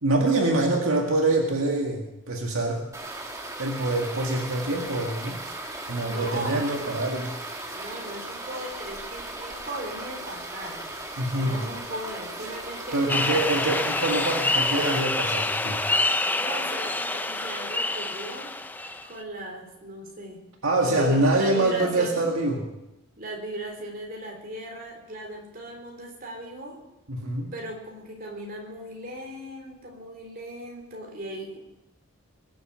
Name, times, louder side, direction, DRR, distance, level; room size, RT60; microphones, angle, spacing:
voice 1, 0.0-2.8 3.6-5.4 5.9-7.4 11.2-11.6 12.9-15.8 20.6-22.6 27.1-27.5, right 2 dB, 75° right, 1 dB, 2.0 m, -25 dB
sound 1, 2.9-15.0, right 2 dB, 15° right, 1.7 m, -37 dB
voice 2, 6.0-6.8 7.7-10.9 11.4-13.0 13.3-13.5 16.3-18.5 19.0-20.4 20.8-22.2 23.2-26.8 27.5-31.6, right 1 dB, 40° right, 1 dB, 3.7 m, -37 dB
sound 2, 13.1-19.2, left 2 dB, 10° left, 0.5 m, -27 dB
21.0 x 8.3 x 7.6 m, 0.95 s
head